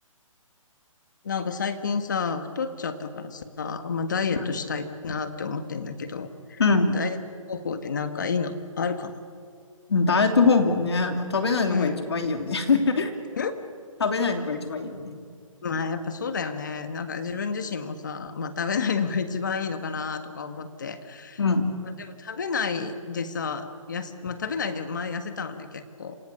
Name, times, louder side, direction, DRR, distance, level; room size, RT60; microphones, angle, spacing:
voice 1, 1.2-6.6 6.9-7.2 7.5-9.1 11.7-12.1 13.4-13.6 15.6-21.4 22.0-26.2, left 5 dB, 35° left, 9 dB, 1.6 m, -30 dB
voice 2, 6.6-7.0 9.9-13.2 14.0-15.2 21.4-21.8, left 4 dB, 50° left, 6 dB, 2.7 m, -23 dB
28.0 x 26.5 x 6.8 m, 2.2 s
hypercardioid pair, 180°, 17 cm